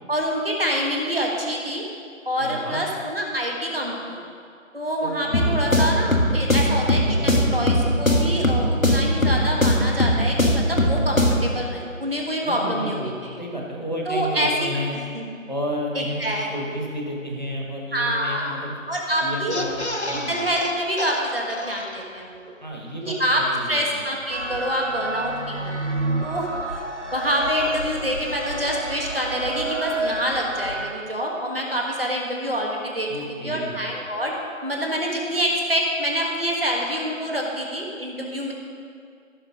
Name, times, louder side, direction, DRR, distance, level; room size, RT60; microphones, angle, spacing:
voice 1, 0.1-1.8 2.2-4.2 4.7-13.4 14.1-14.8 15.1-15.3 15.9-16.8 17.9-18.5 18.9-19.6 20.0-22.6 23.0-25.8 26.2-33.1 33.4-34.3 34.6-38.5, equal, 45° right, -1 dB, 1.6 m, -26 dB
voice 2, 2.4-2.8 5.0-5.7 7.2-7.7 12.4-15.0 15.5-18.7 19.2-19.8 20.1-20.3 22.6-24.0 33.1-33.8, equal, 35° left, -1 dB, 1.4 m, -31 dB
sound 1, 5.3-11.6, left 1 dB, 75° left, 1.5 m, -20 dB
sound 2, 19.5-22.4 22.7-22.8 23.0-23.2, left 2 dB, 55° left, 0.8 m, -32 dB
sound 3, 24.3-30.9, right 2 dB, 60° right, 1.1 m, -29 dB
15.0 x 6.5 x 3.7 m, 2.3 s
figure-of-eight pair, 180°, 40 cm